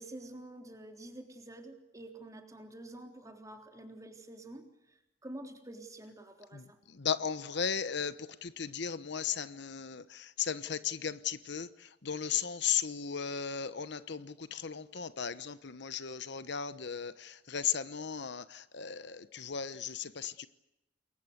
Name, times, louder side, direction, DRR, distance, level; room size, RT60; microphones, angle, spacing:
voice 1, 0.0-4.6 5.2-6.8, right 1 dB, 20° right, 3.6 m, -48 dB
voice 2, 7.0-8.1 8.4-11.7 12.0-20.5, left 7 dB, 65° left, 1.0 m, -36 dB
28.5 x 22.5 x 8.0 m
head